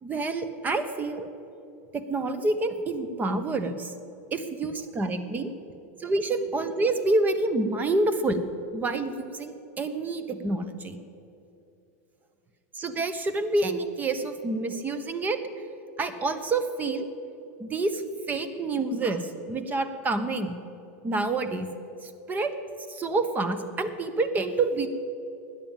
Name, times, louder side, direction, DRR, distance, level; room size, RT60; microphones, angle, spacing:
voice 1, 0.0-1.3 1.9-3.9 4.3-5.5 6.0-8.4 8.7-11.0 12.7-15.4 16.0-17.1 17.6-18.0 18.3-20.5 21.0-21.7 22.0-22.5 22.9-24.9, right 2 dB, 20° right, 11 dB, 0.9 m, -28 dB
13.0 x 9.6 x 7.4 m, 2.7 s
supercardioid pair, 130°, 8 cm